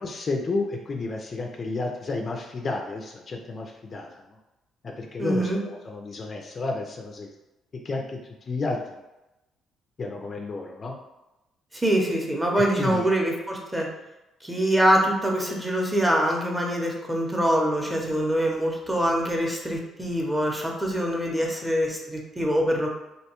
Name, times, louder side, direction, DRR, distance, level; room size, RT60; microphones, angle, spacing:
voice 1, 0.0-4.1 5.0-7.3 7.8-8.2 8.5-8.8 10.0-10.9 12.8-13.1, left 3 dB, 40° left, 1 dB, 0.3 m, -31 dB
voice 2, 5.2-5.6 11.7-13.9 14.4-22.9, equal, 10° right, -1 dB, 0.6 m, -24 dB
2.6 x 2.2 x 2.8 m, 0.97 s
cardioid pair, 85°, 0 cm